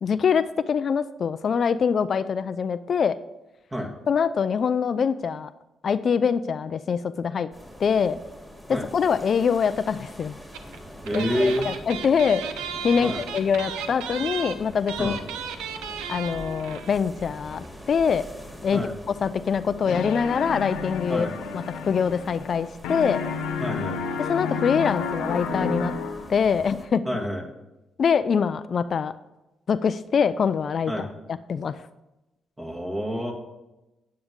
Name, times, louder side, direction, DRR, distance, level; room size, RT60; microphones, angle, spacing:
voice 1, 0.0-3.2 4.1-5.5 5.8-7.5 7.8-8.2 8.7-10.3 11.1-12.4 12.8-15.2 16.1-18.2 18.6-18.9 19.2-21.3 21.5-23.2 24.2-25.9 26.3-27.0 28.0-29.1 29.7-30.9 31.5-31.9, left 6 dB, 55° left, 14 dB, 0.4 m, -24 dB
sound 1, 7.5-26.8, equal, ahead, 2.9 m, -44 dB
sound 2, 10.5-10.8 11.0-16.9 17.2-17.3 17.5-17.7, right 7 dB, 85° right, 0.7 m, -34 dB
voice 2, 11.0-11.7 13.0-13.2 15.0-15.2 18.7-18.9 21.1-21.3 23.6-24.0 27.0-27.4 30.9-31.1 32.6-33.3, equal, 20° right, 0 dB, 2.3 m, -27 dB
sound 3, 19.8-22.6 22.8-26.4, left 5 dB, 80° left, 1.0 m, -31 dB
9.5 x 8.7 x 3.7 m, 0.99 s
supercardioid pair, 55°, 0 cm